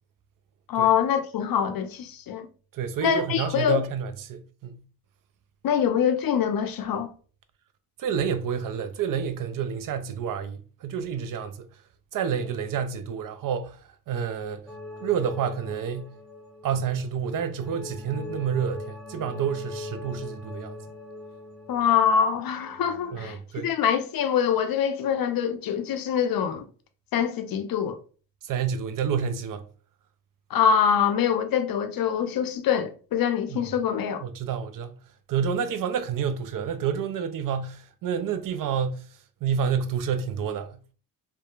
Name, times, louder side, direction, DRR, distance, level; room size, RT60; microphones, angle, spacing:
voice 1, 0.7-2.5 3.0-3.8 5.6-7.1 21.7-23.4 23.6-26.6 27.1-28.0 30.5-34.2, left 8 dB, 50° left, 0.5 m, -24 dB
voice 2, 2.7-4.8 8.0-11.7 12.1-14.7 15.0-16.1 16.6-20.8 23.1-23.7 28.4-29.7 33.5-33.7 34.2-35.0 35.3-39.1 39.4-40.8, right 7 dB, 50° right, 0.5 m, -29 dB
sound 1, 14.7-23.4, left 2 dB, ahead, 0.9 m, -41 dB
2.8 x 2.1 x 2.3 m
hypercardioid pair, 45°, 45 cm